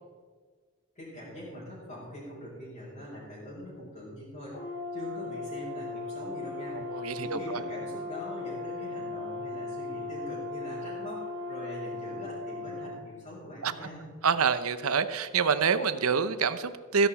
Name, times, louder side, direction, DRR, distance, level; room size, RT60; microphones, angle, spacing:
voice 1, 0.9-14.1, equal, 35° left, -10 dB, 4.9 m, -43 dB
Brass instrument, 4.5-12.9, left 3 dB, 55° left, 3.1 m, -37 dB
voice 2, 6.7-7.6 13.6-13.7 14.2-17.1, right 6 dB, 75° right, 12 dB, 0.7 m, -27 dB
15.0 x 11.5 x 4.2 m, 1.5 s
head